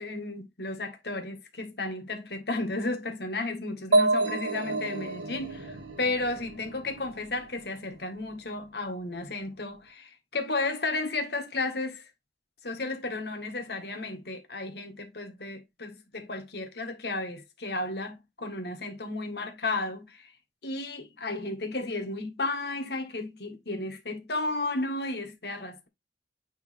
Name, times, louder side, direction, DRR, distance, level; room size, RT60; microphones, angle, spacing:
voice 1, 0.0-12.1 12.6-20.3 20.6-25.9, left 2 dB, 60° left, 1.6 m, -33 dB
sound 1, 3.9-7.6, right 2 dB, 85° right, 1.3 m, -28 dB
9.4 x 3.4 x 3.4 m
head